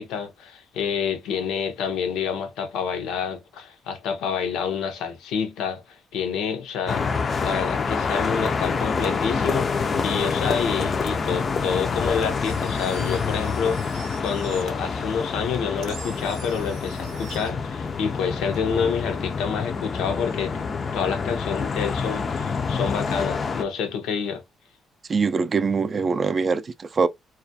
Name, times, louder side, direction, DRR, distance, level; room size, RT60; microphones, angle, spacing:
voice 1, 0.0-7.1 7.4-20.6 20.9-24.4, left 6 dB, 90° left, 0.6 m, -28 dB
sound 1, 6.9-23.6, left 5 dB, 45° left, 0.4 m, -27 dB
Engine, 12.2-19.4, right 6 dB, 85° right, 0.7 m, -46 dB
voice 2, 25.1-27.1, right 5 dB, 40° right, 0.3 m, -23 dB
2.3 x 2.1 x 2.6 m
cardioid pair, 90°, 0 cm